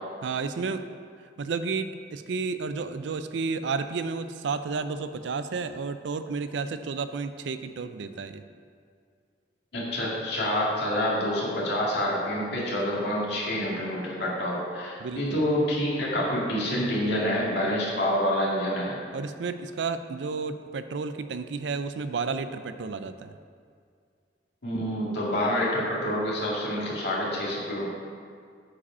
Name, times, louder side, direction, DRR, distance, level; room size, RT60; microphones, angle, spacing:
voice 1, 0.2-0.8 1.4-8.4 15.0-15.4 19.1-23.3, right 4 dB, 70° right, 11 dB, 0.4 m, -32 dB
voice 2, 9.7-18.9 24.6-27.9, equal, 65° left, -5 dB, 2.2 m, -27 dB
8.4 x 5.1 x 5.5 m, 2.2 s
head